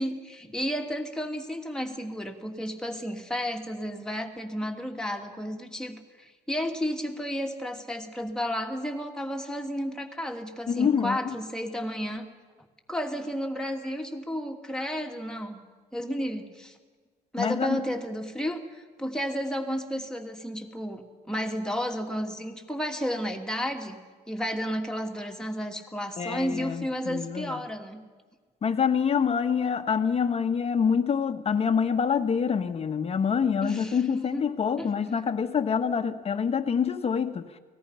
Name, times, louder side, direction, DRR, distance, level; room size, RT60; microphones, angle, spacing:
voice 1, 0.0-12.2 12.9-15.6 15.9-16.8 17.3-24.0 24.3-28.0 33.6-34.4 34.8-34.9, equal, 5° left, 2.6 m, -32 dB
voice 2, 10.7-11.3 17.4-17.8 26.2-27.6 28.6-37.5, left 6 dB, 35° left, 1.3 m, -26 dB
30.0 x 20.0 x 5.7 m
cardioid pair, 110°, 17 cm